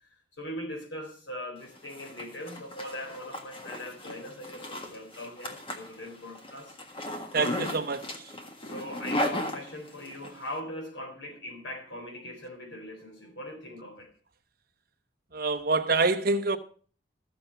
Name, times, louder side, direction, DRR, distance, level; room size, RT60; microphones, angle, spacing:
voice 1, 0.4-6.7 7.6-7.9 8.6-14.1, left 1 dB, 85° left, 3.8 m, -40 dB
Zipper (clothing), 1.6-10.3, left 1 dB, 30° left, 1.6 m, -36 dB
voice 2, 7.3-8.0 15.3-16.6, right 3 dB, 55° right, 0.9 m, -26 dB
14.0 x 7.0 x 5.7 m
head